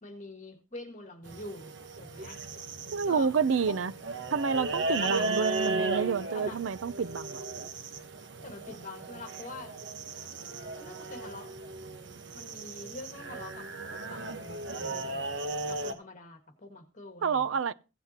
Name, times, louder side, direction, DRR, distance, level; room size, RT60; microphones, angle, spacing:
voice 1, 0.0-1.7 2.0-2.4 3.0-3.3 3.7-3.8 5.0-5.3 6.3-6.6 8.4-9.8 10.8-11.5 12.3-13.7 14.1-15.4 15.7-17.6, left 2 dB, 40° left, 1.8 m, -45 dB
sound 1, 1.3-15.9, right 3 dB, 65° right, 1.1 m, -35 dB
voice 2, 2.9-3.9 4.3-7.4 17.2-17.7, right 5 dB, 80° right, 0.5 m, -29 dB
16.0 x 8.1 x 2.9 m
head